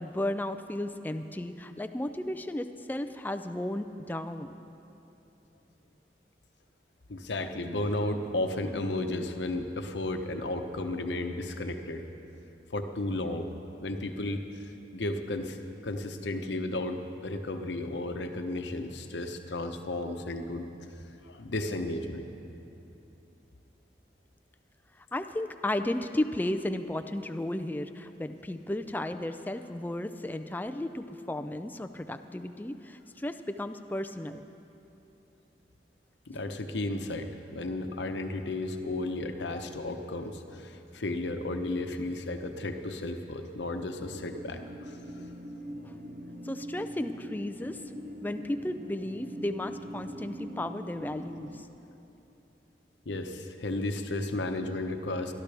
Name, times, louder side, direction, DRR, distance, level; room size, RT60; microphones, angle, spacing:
voice 1, 0.0-4.5 25.1-34.5 45.8-46.0 46.4-47.8 48.2-51.6, left 1 dB, 10° left, 8 dB, 0.4 m, -34 dB
voice 2, 7.1-12.0 12.7-13.5 13.8-15.6 15.8-20.7 21.0-22.3 36.3-44.6 44.9-45.0 53.0-55.3, left 2 dB, 85° left, 6 dB, 0.9 m, -33 dB
sound 1, 44.0-51.6, equal, 45° right, 0.7 m, -42 dB
22.0 x 13.0 x 3.4 m, 2.9 s
head